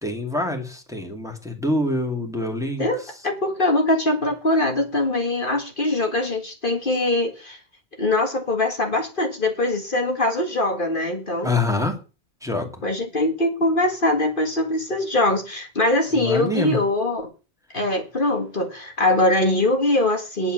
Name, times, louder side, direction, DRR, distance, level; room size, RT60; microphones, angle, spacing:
voice 1, 0.0-2.9 11.4-12.0 12.4-12.7 16.2-16.8, left 2 dB, 5° right, 3 dB, 2.4 m, -25 dB
voice 2, 2.8-7.6 8.0-11.5 12.8-17.3 17.7-20.5, left 2 dB, 45° left, 3 dB, 2.0 m, -22 dB
10.0 x 8.4 x 6.3 m, 0.33 s
omnidirectional pair, 1.2 m